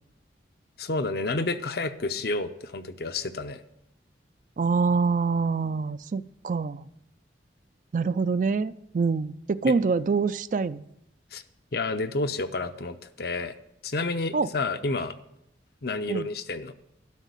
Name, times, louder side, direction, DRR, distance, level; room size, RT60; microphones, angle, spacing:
voice 1, 0.8-3.6 9.6-9.7 11.3-11.4 11.7-13.6 13.8-15.2 15.8-16.7, left 3 dB, 55° left, 10 dB, 0.7 m, -30 dB
voice 2, 4.6-6.9 7.9-10.8 14.3-14.5 16.1-16.3, right 4 dB, 45° right, 15 dB, 0.3 m, -25 dB
12.0 x 6.3 x 8.2 m, 0.81 s
head